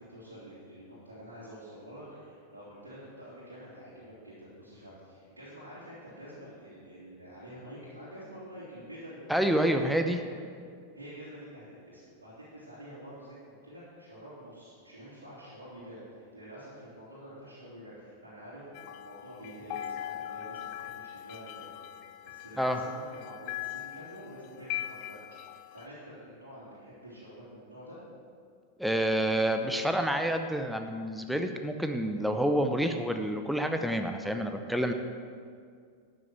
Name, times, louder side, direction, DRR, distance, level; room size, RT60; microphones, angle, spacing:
voice 1, 0.0-10.4 10.9-21.7 22.2-28.0, equal, 80° right, -10 dB, 3.0 m, -48 dB
voice 2, 9.3-10.2 22.6-22.8 28.8-34.9, right 1 dB, ahead, 6 dB, 0.7 m, -28 dB
sound 1, 18.7-25.9, left 12 dB, 45° left, 0.5 m, -41 dB
12.0 x 6.7 x 6.5 m, 2.1 s
figure-of-eight pair, 90°, 0 cm